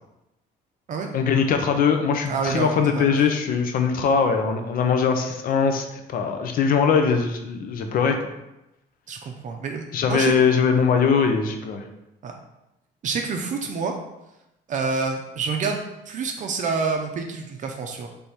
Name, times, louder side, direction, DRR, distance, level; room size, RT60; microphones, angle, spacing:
voice 1, 1.1-8.3 9.9-11.8, left 6 dB, 55° left, 5 dB, 0.7 m, -21 dB
voice 2, 2.3-3.3 9.1-10.3 12.2-12.3 13.0-13.9 14.7-18.1, right 4 dB, 50° right, 3 dB, 0.6 m, -28 dB
3.4 x 3.4 x 4.3 m, 0.92 s
cardioid pair, 110°, 17 cm